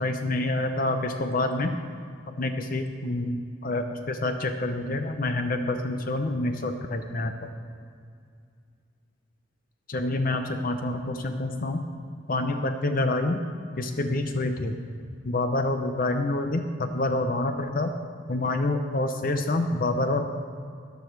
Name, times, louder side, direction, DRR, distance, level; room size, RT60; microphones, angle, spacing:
voice 1, 0.0-1.8 2.4-7.5 9.9-11.9 12.3-13.4 13.8-14.7 15.2-17.9 18.3-20.2, left 2 dB, 45° left, 6 dB, 0.7 m, -27 dB
14.0 x 10.0 x 4.6 m, 2.3 s
head